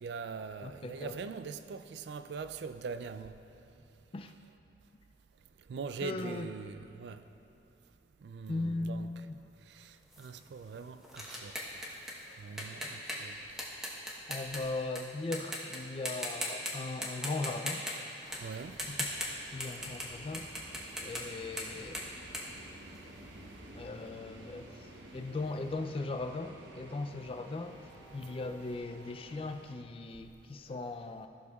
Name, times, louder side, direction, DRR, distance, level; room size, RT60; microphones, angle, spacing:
voice 1, 0.0-3.4 5.7-7.2 8.2-9.2 9.7-11.8 12.4-13.3 18.4-18.8, right 5 dB, 70° right, 0.3 m, -42 dB
voice 2, 0.6-1.2 4.1-4.3 6.0-6.5 8.5-9.4 12.8-12.9 14.3-17.8 18.8-19.1 19.5-20.5 21.0-22.0 23.7-24.9 25.1-27.8 28.1-31.3, left 2 dB, 30° left, 0.3 m, -38 dB
sound 1, 10.1-15.0 15.3-15.8 16.1-16.7 17.0-20.1 20.3-23.4, equal, 5° right, 1.0 m, -39 dB
sound 2, 18.2-29.7, right 1 dB, 85° right, 0.9 m, -52 dB
15.0 x 6.2 x 2.4 m
head